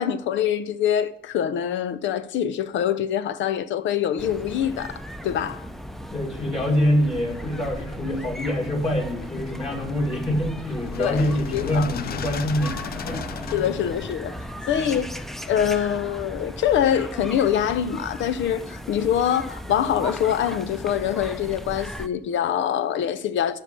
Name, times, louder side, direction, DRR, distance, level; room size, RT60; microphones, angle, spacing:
voice 1, 0.0-5.6 11.0-11.2 11.5-11.9 13.5-14.3 14.7-15.1 15.5-23.6, left 9 dB, 85° left, 0.8 m, -24 dB
sound 1, 4.2-22.1, equal, ahead, 0.6 m, -37 dB
voice 2, 6.1-13.7 14.7-15.2, equal, 35° left, 2.4 m, -25 dB
sound 2, 7.3-14.1, left 8 dB, 55° left, 0.6 m, -37 dB
11.5 x 5.7 x 6.8 m
cardioid pair, 120°, 19 cm